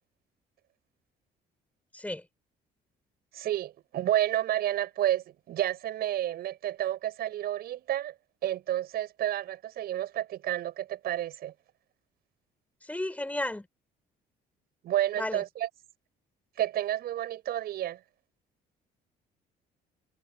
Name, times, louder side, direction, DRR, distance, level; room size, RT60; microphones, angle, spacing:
voice 1, 3.3-8.1 8.4-11.5 14.8-15.7 16.6-18.0, right 12 dB, 65° right, 7.6 m, -30 dB
voice 2, 12.8-13.7 15.2-15.4, left 1 dB, 10° left, 4.8 m, -33 dB
cardioid pair, 110°, 17 cm